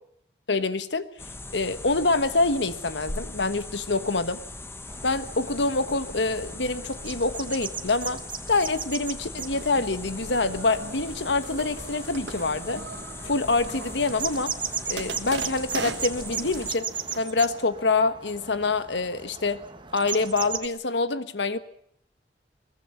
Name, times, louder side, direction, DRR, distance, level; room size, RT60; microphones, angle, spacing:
voice 1, 0.5-1.1 1.5-4.4 5.0-8.2 8.5-12.8 13.2-14.5 14.9-16.9 17.2-19.6 19.9-21.6, left 3 dB, 80° left, 12 dB, 1.4 m, -26 dB
sound 1, 1.2-16.8, left 2 dB, 15° left, 1.1 m, -40 dB
sound 2, 4.9-20.7, right 6 dB, 25° right, 1.5 m, -38 dB
sound 3, 9.5-17.2, right 4 dB, 85° right, 1.6 m, -40 dB
21.5 x 21.0 x 7.3 m, 0.70 s
head